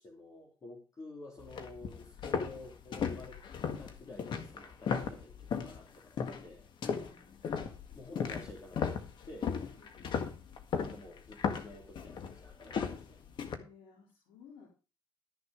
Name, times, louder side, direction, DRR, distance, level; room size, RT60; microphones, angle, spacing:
voice 1, 0.0-3.4 3.8-6.6 7.9-9.5 10.8-13.2, left 2 dB, 40° left, -1 dB, 3.0 m, -50 dB
sound 1, 1.4-5.8 6.2-6.5 6.8-13.6, left 6 dB, 65° left, 1.8 m, -36 dB
voice 2, 7.1-7.5 9.8-10.3 13.5-14.7, left 6 dB, 85° left, -1 dB, 3.9 m, -58 dB
13.0 x 6.9 x 5.0 m, 0.32 s
cardioid pair, 90°, 9 cm